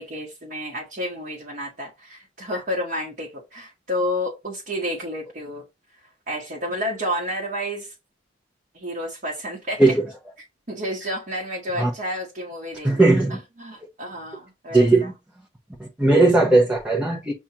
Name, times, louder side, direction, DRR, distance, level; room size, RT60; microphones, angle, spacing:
voice 1, 0.0-5.6 6.3-7.9 8.7-9.8 10.7-15.1, equal, 45° right, 1.1 m, -30 dB
voice 2, 12.8-13.4 14.7-15.1 15.8-17.3, right 2 dB, 5° right, 0.7 m, -17 dB
7.2 x 2.4 x 2.8 m
head